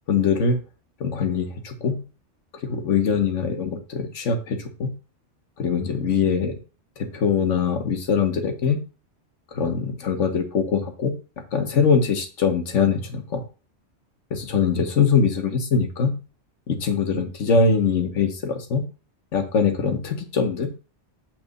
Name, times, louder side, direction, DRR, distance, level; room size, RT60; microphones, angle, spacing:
voice 1, 0.1-0.6 1.0-1.9 2.6-4.9 5.6-6.5 7.0-8.8 9.5-11.1 11.5-13.4 14.3-16.1 16.7-18.8 19.3-20.7, left 5 dB, 80° left, 5 dB, 1.4 m, -22 dB
6.0 x 3.2 x 5.2 m, 0.34 s
omnidirectional pair, 1.3 m